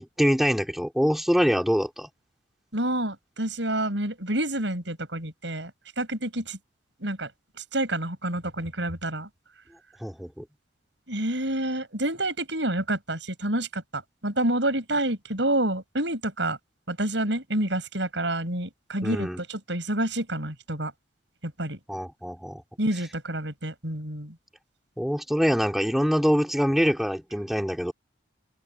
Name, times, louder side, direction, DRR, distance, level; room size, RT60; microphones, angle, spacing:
voice 1, 0.0-2.1 10.0-10.4 19.0-19.4 21.9-22.6 25.0-27.9, equal, ahead, 3.3 m, -24 dB
voice 2, 2.7-5.7 6.0-6.6 7.0-7.3 7.6-9.3 11.1-16.6 16.9-20.9 21.4-21.8 22.8-24.4, right 1 dB, 70° right, 7.0 m, -28 dB
open air
head